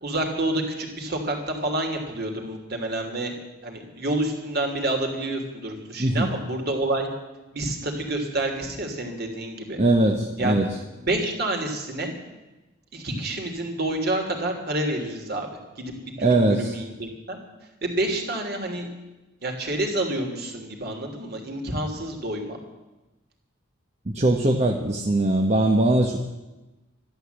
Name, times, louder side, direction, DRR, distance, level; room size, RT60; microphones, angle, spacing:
voice 1, 0.0-3.3 3.6-7.1 7.5-9.8 10.4-10.6 11.0-12.1 12.9-15.5 15.8-17.4 17.8-18.9 19.4-22.6, right 1 dB, 50° right, 3 dB, 3.0 m, -28 dB
voice 2, 6.0-6.3 9.8-10.7 16.2-16.7 24.1-26.2, right 1 dB, 35° right, 2 dB, 1.1 m, -21 dB
13.0 x 12.0 x 8.1 m, 1.1 s
head